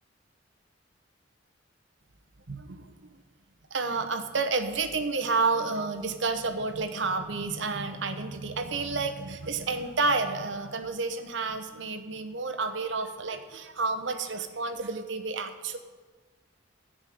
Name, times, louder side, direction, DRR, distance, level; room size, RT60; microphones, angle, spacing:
voice 1, 2.5-3.0 3.7-15.8, right 3 dB, 70° right, 8 dB, 1.0 m, -30 dB
13.5 x 5.3 x 8.6 m, 1.4 s
head